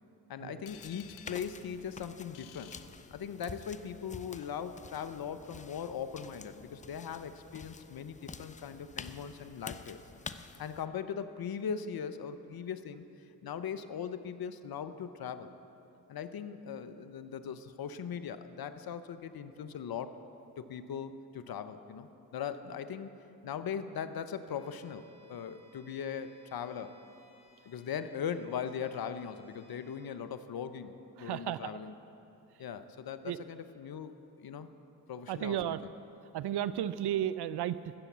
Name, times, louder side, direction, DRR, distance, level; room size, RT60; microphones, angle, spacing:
voice 1, 0.3-2.7 3.1-10.0 10.6-13.0 13.4-15.5 16.1-20.2 20.6-23.1 23.4-25.0 25.3-26.9 27.7-30.9 31.2-31.9 32.6-34.7 35.1-35.8, left 7 dB, 45° left, 11 dB, 0.8 m, -39 dB
sound 1, 0.7-3.7, left 12 dB, 80° left, 0.7 m, -56 dB
sound 2, 0.7-10.9, left 5 dB, 15° left, 0.4 m, -49 dB
Bowed string instrument, 24.4-30.2, equal, 10° right, 2.7 m, -65 dB
voice 2, 31.2-31.8 33.2-33.4 35.3-35.8 36.3-37.8, right 11 dB, 55° right, 15 dB, 0.6 m, -33 dB
16.0 x 7.1 x 6.9 m, 2.9 s
hypercardioid pair, 55°, 49 cm